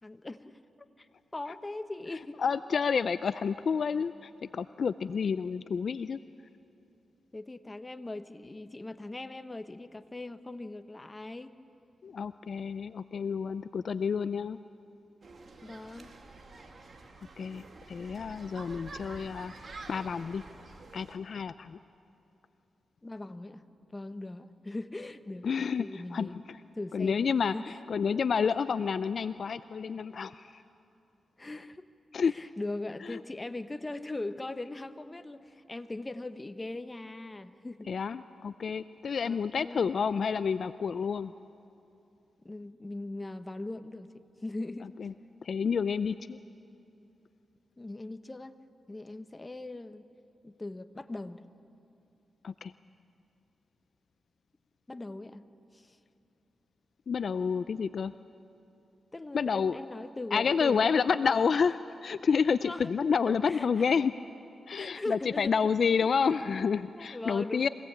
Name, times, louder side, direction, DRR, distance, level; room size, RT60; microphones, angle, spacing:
voice 1, 0.0-0.5 1.0-2.4 7.3-11.5 15.6-16.1 23.0-23.6 23.9-26.5 26.7-27.2 27.5-27.8 31.4-31.9 32.2-38.3 39.2-39.9 42.4-44.9 47.8-48.5 48.9-50.1 50.4-51.4 54.9-55.4 55.7-56.0 59.1-61.5 62.6-62.9 63.4-64.0 64.7-65.5 66.9-67.7, left 2 dB, 25° left, 11 dB, 1.1 m, -40 dB
voice 2, 2.4-6.2 12.0-14.6 17.4-19.5 19.9-20.4 20.9-21.8 25.4-26.3 26.9-30.6 32.1-32.3 33.0-33.2 37.9-41.3 45.0-45.1 45.4-46.4 52.4-52.7 57.1-58.1 59.3-59.8 60.3-64.1 64.7-67.7, left 6 dB, 65° left, 14 dB, 0.4 m, -29 dB
sound 1, 15.2-21.2, right 3 dB, 50° right, 2.5 m, -48 dB
24.5 x 17.5 x 8.6 m, 2.8 s
cardioid pair, 60°, 0 cm